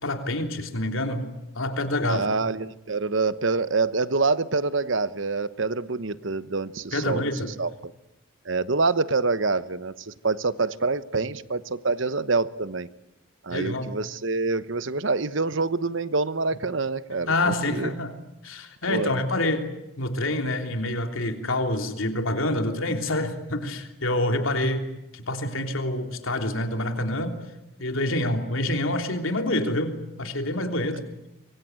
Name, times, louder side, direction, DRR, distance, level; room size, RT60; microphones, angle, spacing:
voice 1, 0.0-1.3 1.5-2.3 6.9-7.5 13.5-13.9 17.2-18.1 18.4-19.7 20.0-24.9 25.1-27.3 27.8-31.0, left 1 dB, 75° left, 5 dB, 3.3 m, -27 dB
voice 2, 2.1-7.2 7.6-7.9 8.4-12.9 13.4-17.9 18.9-19.2, right 3 dB, 65° right, 15 dB, 1.0 m, -26 dB
25.0 x 23.5 x 9.4 m, 0.89 s
head